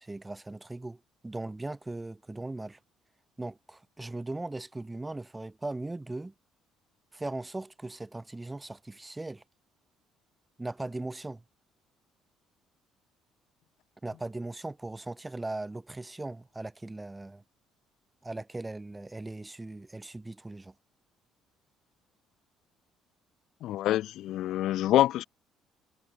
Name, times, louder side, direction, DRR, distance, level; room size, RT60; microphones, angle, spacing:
voice 1, 0.0-2.8 3.4-6.3 7.1-9.4 10.6-11.4 14.0-17.4 18.2-20.7, right 2 dB, 10° right, 1.2 m, -39 dB
voice 2, 23.6-25.2, left 14 dB, 70° left, 0.8 m, -26 dB
cardioid pair, 120°, 0 cm